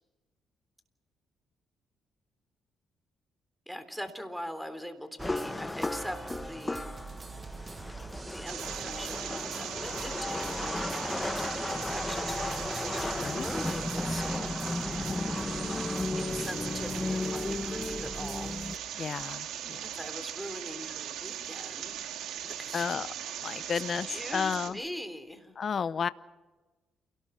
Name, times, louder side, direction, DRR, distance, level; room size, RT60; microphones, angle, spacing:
voice 1, 3.7-6.9 8.3-15.2 16.2-18.6 19.8-22.9 23.7-25.6, equal, ahead, 8 dB, 3.5 m, -42 dB
sound 1, 5.2-18.8, left 2 dB, 15° left, 1.3 m, -35 dB
sound 2, 5.2-18.8, right 4 dB, 35° right, 1.2 m, -45 dB
sound 3, 8.5-24.7, right 10 dB, 85° right, 2.7 m, -39 dB
voice 2, 13.0-13.5 19.0-19.9 22.7-23.1 23.4-24.8 25.6-26.1, left 6 dB, 45° left, 16 dB, 0.8 m, -32 dB
28.5 x 18.5 x 5.9 m, 1.2 s
cardioid pair, 90°, 0 cm